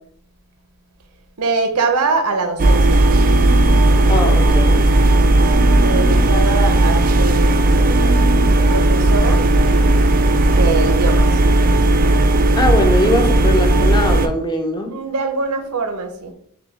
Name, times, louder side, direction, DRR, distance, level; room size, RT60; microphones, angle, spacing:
voice 1, 1.4-3.1 5.3-8.1 8.7-9.5 10.5-11.4 14.9-16.3, right 3 dB, 80° right, 7 dB, 0.7 m, -23 dB
sound 1, 2.6-14.3, right 2 dB, 40° right, 0.4 m, -14 dB
sound 2, 3.1-3.8 5.4-6.3 7.8-8.6, left 1 dB, 75° left, 1.4 m, -28 dB
voice 2, 4.1-4.8 12.6-14.9, left 1 dB, 20° left, 3 dB, 0.6 m, -20 dB
5.9 x 2.3 x 3.4 m, 0.66 s
head